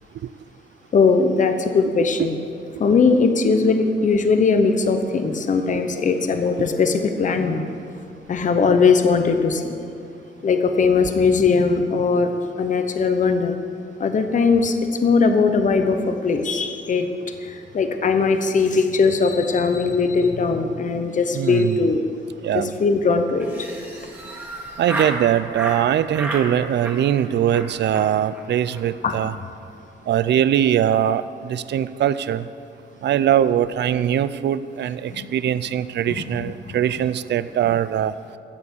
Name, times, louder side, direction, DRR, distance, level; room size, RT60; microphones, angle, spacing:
voice 1, 0.9-2.4 2.8-7.6 8.3-9.7 10.4-12.3 12.6-13.5 14.0-14.8 15.0-17.1 17.4-22.0 22.5-23.5 29.0-29.2 35.1-35.3 36.1-36.2, left 4 dB, 40° left, 7 dB, 0.8 m, -19 dB
voice 2, 21.3-21.9 22.4-22.7 24.8-29.3 30.1-31.2 31.5-32.4 33.0-38.1, right 10 dB, 65° right, 15 dB, 0.4 m, -21 dB
Laughter, 23.4-25.2 25.5-25.8 26.1-26.5 26.8-27.2 27.5-27.7 27.9-28.1 28.3-28.4 28.7-28.8 29.1-29.4, right 1 dB, 10° right, 1.8 m, -31 dB
13.5 x 8.5 x 6.9 m, 2.4 s
wide cardioid pair, 155°, 19 cm